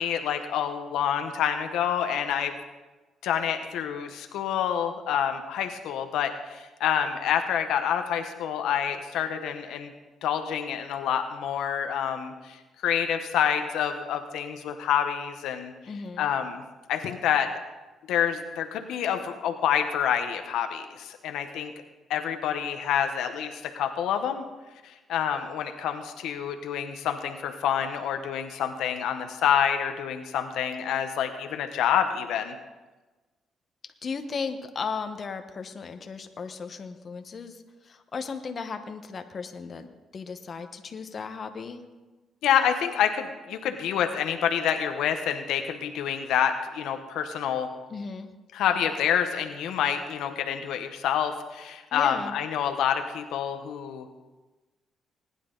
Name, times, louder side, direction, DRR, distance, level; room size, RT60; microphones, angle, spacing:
voice 1, 0.0-2.5 3.2-9.9 10.2-15.7 16.2-16.6 16.9-17.5 18.1-21.7 22.1-24.4 24.8-32.6 42.4-47.7 48.5-54.1, left 9 dB, 85° left, 6 dB, 0.9 m, -27 dB
voice 2, 15.9-16.3 34.0-39.9 40.1-41.8 47.9-48.3 51.9-52.3, left 5 dB, 45° left, 7 dB, 1.1 m, -36 dB
19.5 x 10.0 x 3.9 m, 1.2 s
cardioid pair, 90°, 0 cm